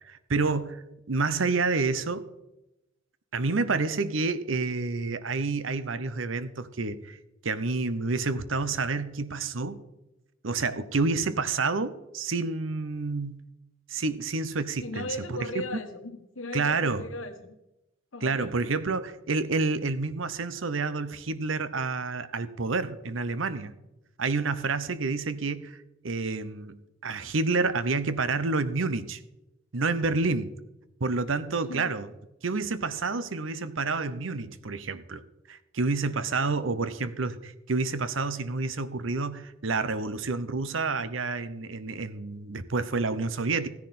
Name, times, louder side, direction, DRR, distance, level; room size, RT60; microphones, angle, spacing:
voice 1, 0.0-2.3 3.3-7.2 7.4-9.8 10.4-13.4 13.9-15.6 16.5-17.0 18.2-23.7 24.2-25.8 26.0-29.2 29.7-30.5 31.0-32.1 32.4-35.2 35.5-43.7, right 3 dB, 75° right, 14 dB, 0.8 m, -29 dB
voice 2, 14.8-17.5 18.1-18.5 31.7-31.9, left 2 dB, 75° left, 8 dB, 1.4 m, -37 dB
15.5 x 10.5 x 4.3 m, 0.94 s
head